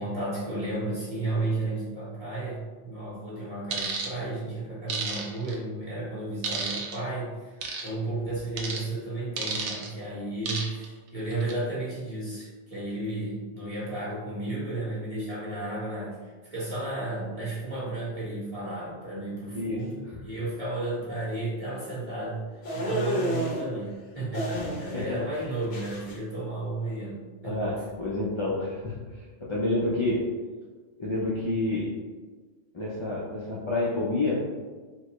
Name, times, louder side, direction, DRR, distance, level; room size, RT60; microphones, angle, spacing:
voice 1, 0.0-27.7, right 2 dB, 30° right, -8 dB, 1.4 m, -33 dB
sound 1, 3.7-4.1 4.9-5.5 6.4-7.0 7.6-7.9 8.6-8.8 9.4-9.9 10.5-10.9 11.3-11.5, right 5 dB, 75° right, 0.9 m, -31 dB
voice 2, 19.5-19.9 24.5-25.2 27.4-30.3 31.0-31.9 32.7-34.4, left 2 dB, 40° left, -6 dB, 0.4 m, -29 dB
sound 2, 22.6-23.6 24.3-25.1 25.3-26.1, equal, 80° left, 1.2 m, -30 dB
4.3 x 2.2 x 3.0 m, 1.4 s
omnidirectional pair, 1.2 m